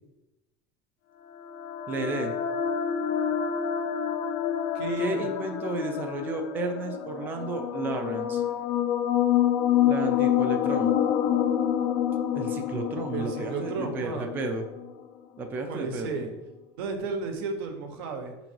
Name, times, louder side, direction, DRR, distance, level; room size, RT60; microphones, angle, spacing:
sound 1, 1.3-14.9, left 9 dB, 45° left, 0.4 m, -27 dB
voice 1, 1.9-2.3 5.0-8.4 9.9-11.0 12.3-14.6 15.4-16.2, right 3 dB, 15° right, 4 dB, 0.4 m, -32 dB
voice 2, 4.7-5.3 13.1-14.5 15.6-16.3 16.8-18.3, right 3 dB, 85° right, 5 dB, 1.1 m, -33 dB
6.1 x 3.9 x 4.5 m, 1.0 s
cardioid pair, 175°, 12 cm